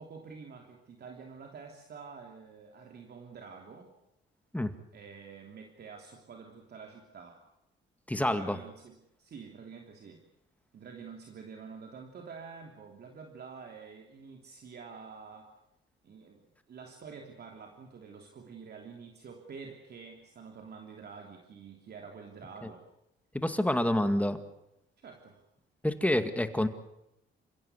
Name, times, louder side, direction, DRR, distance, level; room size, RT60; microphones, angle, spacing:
voice 1, 0.0-3.9 4.9-7.4 8.2-10.2 10.7-15.5 16.0-22.8 25.0-25.4, right 5 dB, 55° right, 3 dB, 3.2 m, -48 dB
voice 2, 8.1-8.6 23.3-24.4 25.8-26.7, left 1 dB, 5° left, 9 dB, 2.1 m, -27 dB
28.5 x 16.0 x 8.1 m, 0.84 s
cardioid pair, 90°, 20 cm